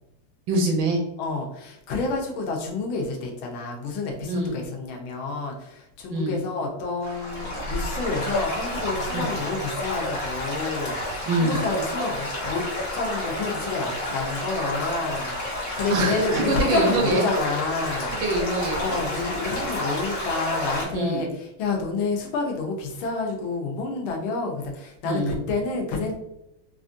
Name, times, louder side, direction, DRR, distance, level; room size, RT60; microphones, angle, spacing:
voice 1, 0.5-1.0 4.3-4.5 6.1-6.3 9.1-9.3 11.3-11.6 15.9-17.2 18.2-19.0 20.9-21.2 25.0-25.3, right 2 dB, 70° right, 1 dB, 1.3 m, -24 dB
voice 2, 1.2-11.0 11.4-12.6 12.9-15.3 15.8-18.1 18.8-26.1, left 3 dB, 75° left, 1 dB, 1.5 m, -29 dB
Stream / Gurgling / Trickle dribble, 7.0-20.8, left 1 dB, 40° left, 1.0 m, -30 dB
4.3 x 2.4 x 2.5 m, 0.86 s
omnidirectional pair, 2.3 m